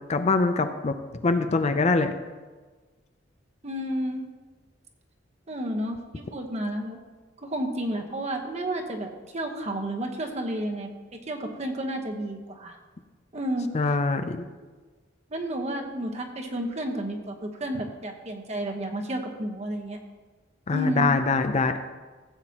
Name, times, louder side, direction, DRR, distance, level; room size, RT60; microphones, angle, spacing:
voice 1, 0.1-0.9 1.2-2.1 13.7-14.4 20.7-21.8, left 3 dB, 35° left, 8 dB, 0.5 m, -23 dB
voice 2, 3.6-4.3 5.5-7.0 7.4-10.9 11.3-12.8 13.3-13.7 15.3-20.0 20.7-21.1, right 1 dB, 35° right, 3 dB, 1.1 m, -31 dB
16.0 x 7.9 x 2.9 m, 1.3 s
head